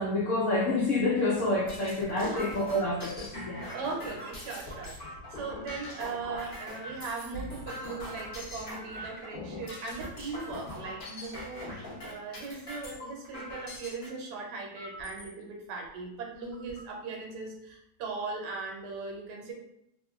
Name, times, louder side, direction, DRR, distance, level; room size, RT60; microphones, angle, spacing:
voice 1, 0.0-3.7, left 2 dB, 75° left, -3 dB, 0.7 m, -28 dB
sound 1, 1.2-14.1 14.8-15.3 15.9-16.0 16.3-16.9, left 1 dB, 40° left, 0.9 m, -42 dB
voice 2, 3.7-19.5, right 4 dB, 75° right, 0 dB, 1.2 m, -39 dB
2.9 x 2.2 x 3.5 m, 0.80 s
omnidirectional pair, 1.8 m